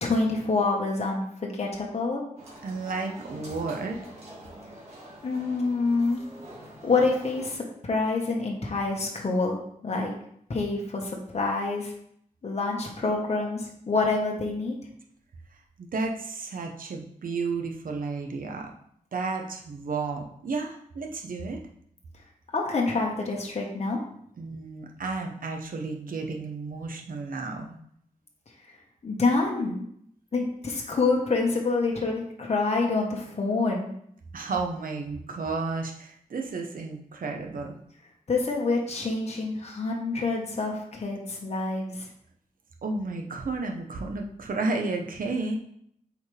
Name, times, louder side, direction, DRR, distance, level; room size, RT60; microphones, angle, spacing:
voice 1, 0.0-2.2 5.2-6.2 6.8-10.1 10.5-11.9 12.4-14.8 22.5-24.0 29.0-29.8 30.3-33.9 38.3-42.1, left 3 dB, 50° left, -1 dB, 1.5 m, -27 dB
sound 1, 2.4-7.5, right 1 dB, 45° right, 2.4 m, -46 dB
voice 2, 2.6-4.0 15.8-18.7 19.1-21.6 24.4-27.7 34.3-37.8 42.8-45.6, right 3 dB, 75° right, 2 dB, 1.1 m, -32 dB
8.1 x 4.9 x 3.5 m, 0.68 s
wide cardioid pair, 110°, 14 cm